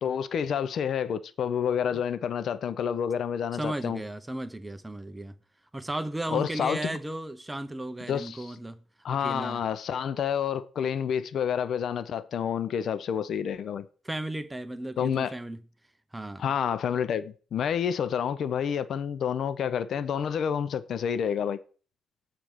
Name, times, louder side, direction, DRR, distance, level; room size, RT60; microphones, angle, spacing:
voice 1, 0.0-4.0 6.3-7.0 8.1-8.6 9.0-13.9 15.0-15.3 16.4-21.6, left 8 dB, 65° left, 0.5 m, -29 dB
voice 2, 3.5-5.4 5.7-8.8 9.1-9.6 14.0-15.6 16.1-16.5, right 1 dB, 10° right, 0.7 m, -35 dB
7.2 x 4.4 x 6.5 m
cardioid pair, 90°, 0 cm